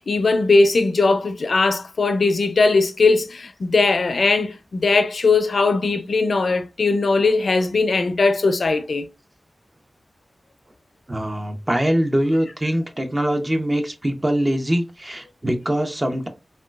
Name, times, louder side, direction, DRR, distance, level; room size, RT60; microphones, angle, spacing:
voice 1, 0.0-9.1, left 3 dB, 85° left, 0.4 m, -19 dB
voice 2, 11.1-16.3, right 1 dB, 30° right, 0.7 m, -23 dB
3.6 x 2.2 x 2.3 m
cardioid pair, 45°, 0 cm